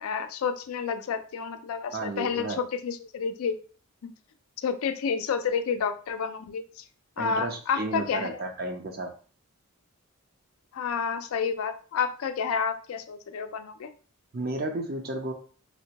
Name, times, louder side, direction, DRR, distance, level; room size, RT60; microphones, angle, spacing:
voice 1, 0.0-3.5 4.0-4.1 4.6-6.8 7.2-8.4 10.7-13.9, left 6 dB, 75° left, 9 dB, 0.4 m, -30 dB
voice 2, 1.9-2.6 7.2-9.1 14.3-15.3, right 2 dB, 45° right, 4 dB, 0.5 m, -33 dB
3.5 x 2.1 x 2.8 m, 0.40 s
head